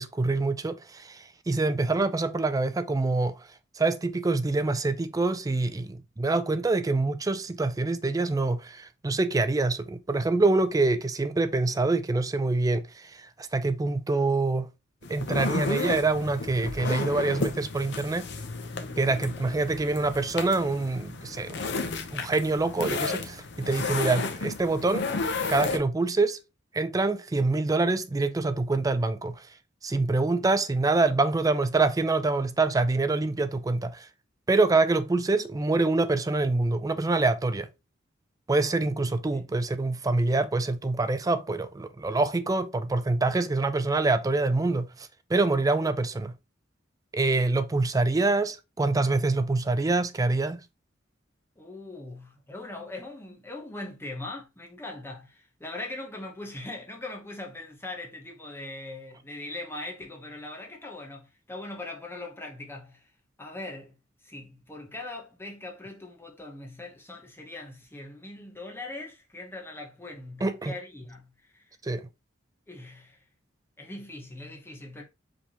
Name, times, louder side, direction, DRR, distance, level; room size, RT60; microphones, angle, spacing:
voice 1, 0.0-3.4 3.8-13.1 13.4-14.7 15.1-18.3 19.0-21.7 22.1-25.1 25.5-26.4 26.7-29.4 29.8-34.1 34.5-37.7 38.5-46.3 47.1-50.6 70.4-70.7 71.8-72.1, right 3 dB, 20° right, 0.4 m, -25 dB
sound 1, 15.0-25.8, left 3 dB, 65° left, 0.7 m, -33 dB
voice 2, 51.6-63.1 63.4-64.0 64.2-71.7 72.7-73.2 73.8-75.0, left 2 dB, 15° left, 0.9 m, -41 dB
5.0 x 3.4 x 2.9 m
head